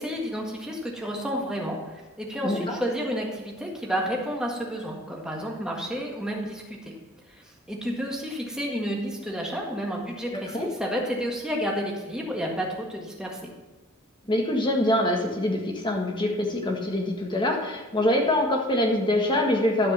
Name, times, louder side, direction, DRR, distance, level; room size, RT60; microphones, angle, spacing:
voice 1, 0.0-7.0 7.3-13.5, equal, 5° right, -2 dB, 1.7 m, -31 dB
voice 2, 2.4-2.8 10.3-10.7 14.3-19.9, left 1 dB, 20° left, 1 dB, 1.5 m, -24 dB
12.5 x 5.1 x 6.9 m, 1.2 s
head